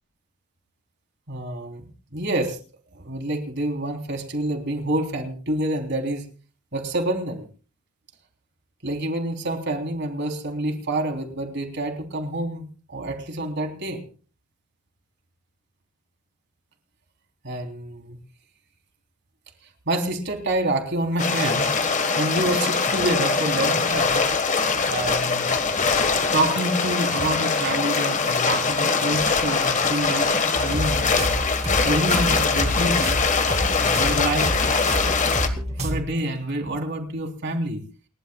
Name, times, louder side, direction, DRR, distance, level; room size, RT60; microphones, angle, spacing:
voice 1, 1.3-2.6 2.9-6.3 6.7-7.5 8.8-14.0 17.4-18.2 19.9-21.7 22.2-24.2 24.9-25.5 26.3-31.3 31.8-33.2 33.8-34.5 35.8-37.8, right 1 dB, 50° right, 3 dB, 3.4 m, -27 dB
sound 1, 21.2-35.5, left 4 dB, 35° left, 1.4 m, -22 dB
sound 2, 30.5-36.0, equal, 30° right, 2.5 m, -28 dB
29.0 x 12.0 x 2.3 m, 0.38 s
head